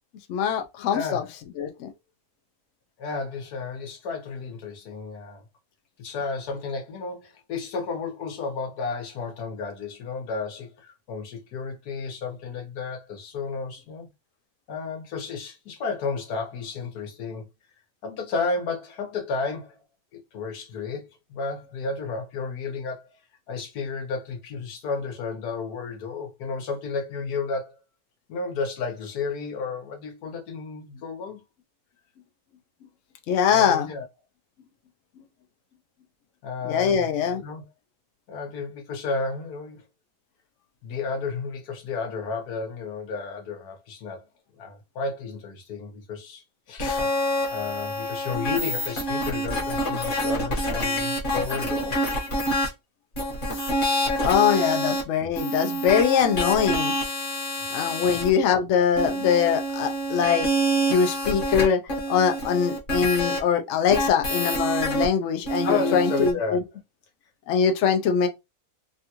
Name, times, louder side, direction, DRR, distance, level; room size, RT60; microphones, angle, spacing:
voice 1, 0.3-1.2 1.6-1.9 33.3-33.9 36.6-37.4 54.2-56.9 57.7-60.5 60.9-61.8 62.1-66.6 67.5-68.3, left 7 dB, 65° left, 0.8 m, -22 dB
voice 2, 0.9-1.3 3.0-5.4 6.0-14.1 14.7-17.5 18.0-19.8 20.1-23.2 23.5-27.7 28.3-31.4 33.5-34.1 36.4-37.1 37.4-37.6 38.3-39.8 40.8-44.2 44.6-47.1 47.5-52.0 58.0-58.3 65.6-66.6, left 4 dB, 90° left, 1.4 m, -32 dB
sound 1, 46.8-52.7 53.2-55.0 55.4-58.3 59.0-63.4 63.9-65.0 65.5-66.3, equal, 40° left, 1.1 m, -27 dB
3.5 x 2.3 x 2.8 m
omnidirectional pair, 1.6 m